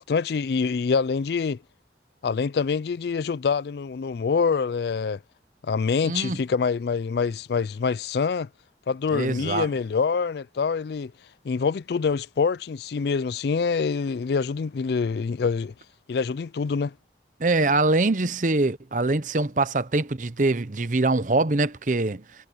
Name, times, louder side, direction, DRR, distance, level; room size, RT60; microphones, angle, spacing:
voice 1, 0.0-1.6 2.2-5.2 5.6-8.5 8.9-11.1 11.4-15.7 16.1-16.9, left 5 dB, 60° left, 0.4 m, -25 dB
voice 2, 6.0-6.4 9.1-9.7 17.4-22.2, right 2 dB, 45° right, 0.8 m, -23 dB
head